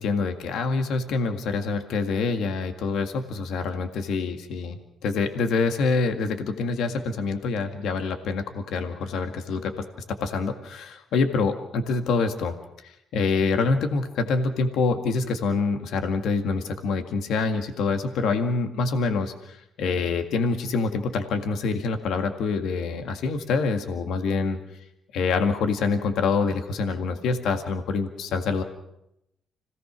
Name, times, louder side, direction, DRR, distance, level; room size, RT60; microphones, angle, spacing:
voice 1, 0.0-12.6 12.8-24.6 25.1-28.6, left 4 dB, 80° left, 6 dB, 1.9 m, -26 dB
26.5 x 18.0 x 6.1 m, 0.81 s
cardioid pair, 90°, 0 cm